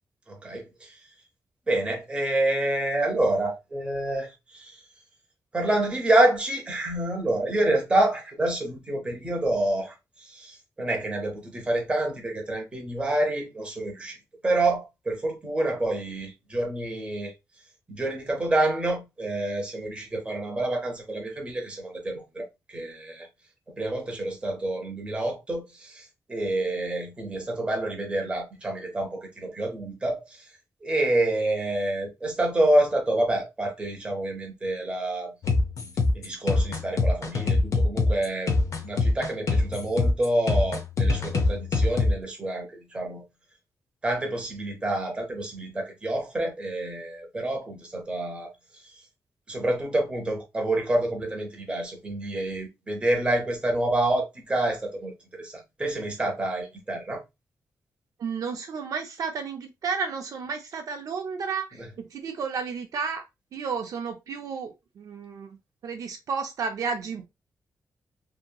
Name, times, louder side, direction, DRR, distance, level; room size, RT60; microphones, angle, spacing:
voice 1, 0.3-0.7 1.7-4.3 4.6-4.7 5.5-9.9 10.3-10.5 10.8-14.2 14.4-17.3 17.9-22.5 22.7-23.3 23.8-26.0 26.3-30.2 30.8-35.3 36.1-38.5 38.8-43.2 44.0-48.5 49.5-55.1 55.4-55.5 55.8-57.2, right 1 dB, 15° right, 0.7 m, -27 dB
sound 1, 35.4-42.1, left 3 dB, 55° left, 0.6 m, -23 dB
voice 2, 58.2-63.3 63.5-65.6 65.8-67.3, right 5 dB, 65° right, 0.4 m, -32 dB
2.7 x 2.7 x 2.2 m
wide cardioid pair, 175°, 7 cm